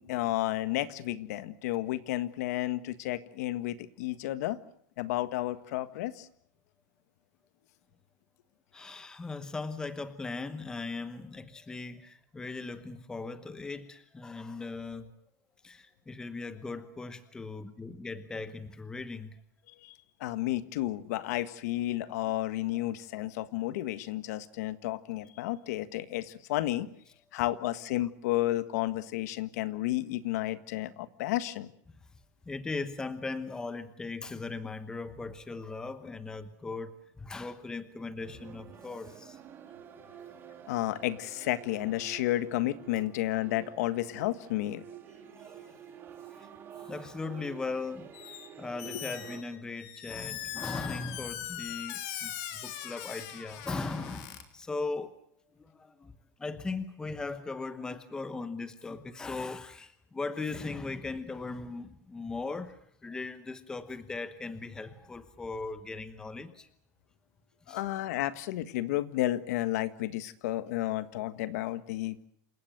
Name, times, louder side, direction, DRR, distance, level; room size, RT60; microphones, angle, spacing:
voice 1, 0.0-4.6 5.0-6.3 19.8-26.9 27.3-31.7 40.7-44.8 48.9-49.0 67.7-72.3, left 15 dB, 65° left, 13 dB, 1.6 m, -32 dB
voice 2, 8.7-15.1 15.6-19.4 22.7-22.8 32.4-39.4 45.4-45.7 46.2-46.5 46.8-55.2 55.5-56.1 56.4-66.7 67.7-67.8, left 3 dB, 10° left, 11 dB, 1.0 m, -39 dB
sound 1, 38.2-49.4, right 9 dB, 25° right, 2.8 m, -49 dB
Squeak, 48.1-48.5 48.8-54.4, left 12 dB, 50° left, 3.3 m, -41 dB
28.0 x 16.0 x 9.1 m, 0.68 s
supercardioid pair, 170°, 9 cm